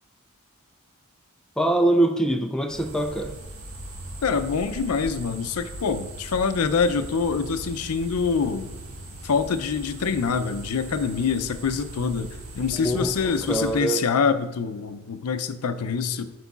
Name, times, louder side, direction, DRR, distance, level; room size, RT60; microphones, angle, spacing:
voice 1, 1.6-3.4 12.7-13.1 13.5-14.0, right 1 dB, 5° left, 4 dB, 0.3 m, -23 dB
sound 1, 2.7-13.7, right 1 dB, 70° right, 1.5 m, -39 dB
voice 2, 4.2-8.7 9.2-16.3, left 5 dB, 85° left, 11 dB, 0.5 m, -25 dB
12.0 x 4.7 x 2.4 m, 1.1 s
head